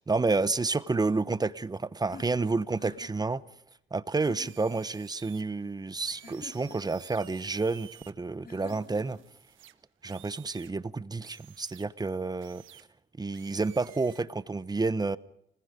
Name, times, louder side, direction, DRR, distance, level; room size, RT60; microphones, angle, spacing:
voice 1, 0.0-3.4 3.9-9.2 10.0-12.9 13.2-15.2, right 3 dB, 20° right, 0.9 m, -30 dB
sound 1, 2.0-3.3 4.1-4.8 6.2-7.0 8.4-9.3, left 5 dB, 50° left, 4.1 m, -48 dB
sound 2, 4.4-5.4 6.1-8.1 8.6-10.7 11.2-11.9 12.4-12.8 13.3-14.2, right 13 dB, 85° right, 1.4 m, -54 dB
29.0 x 20.5 x 5.2 m
cardioid pair, 90°, 20 cm